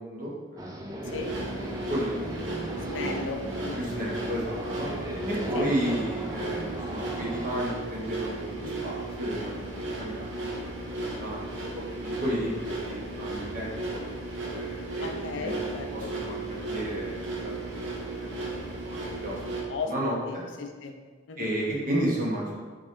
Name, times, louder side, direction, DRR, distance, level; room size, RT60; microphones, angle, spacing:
voice 1, 0.0-1.3 1.9-2.9 3.8-4.9 5.3-11.8 12.2-14.0 14.5-15.5 15.9-16.4 16.7-17.5 18.2-19.4 19.8-20.4 21.4-22.5, equal, 40° right, -5 dB, 1.0 m, -33 dB
sound 1, 0.6-7.5, right 1 dB, 15° right, 0.3 m, -37 dB
sound 2, 1.0-19.6, right 2 dB, 70° right, 0.7 m, -35 dB
voice 2, 1.1-1.5 2.7-3.8 5.5-5.7 15.0-16.1 19.7-19.9 20.3-20.9 21.3-21.5, left 4 dB, 65° left, 3 dB, 0.4 m, -35 dB
3.9 x 3.7 x 3.2 m, 1.5 s
head